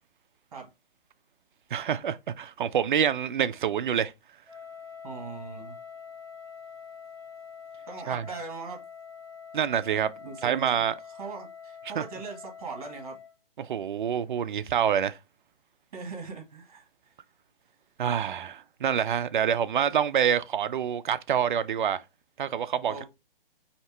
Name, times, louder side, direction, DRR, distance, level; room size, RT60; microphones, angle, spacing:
voice 1, 1.7-4.1 8.1-8.2 9.5-10.1 10.4-10.9 12.0-12.1 13.6-15.2 18.0-22.0 22.4-23.0, right 8 dB, 60° right, 0.5 m, -26 dB
Wind instrument woodwind instrument, 4.5-13.3, left 7 dB, 5° left, 0.5 m, -45 dB
voice 2, 5.0-5.8 7.9-8.8 10.2-10.7 11.1-13.2 15.9-16.9 22.8-23.0, right 4 dB, 40° right, 1.5 m, -39 dB
4.2 x 2.8 x 3.3 m
hypercardioid pair, 165°, 29 cm